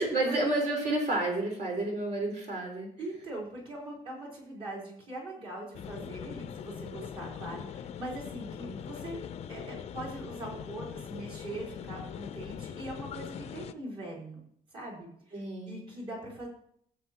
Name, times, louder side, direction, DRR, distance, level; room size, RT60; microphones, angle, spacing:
voice 1, 0.0-2.9 8.6-8.8 15.3-15.8, right 2 dB, 55° right, 0 dB, 4.1 m, -30 dB
voice 2, 3.0-9.2 9.5-14.4 14.7-16.5, right 1 dB, 40° right, -3 dB, 4.0 m, -41 dB
sound 1, 5.7-13.7, left 8 dB, 50° left, 0.5 m, -42 dB
13.5 x 8.0 x 2.9 m, 0.65 s
cardioid pair, 170°, 14 cm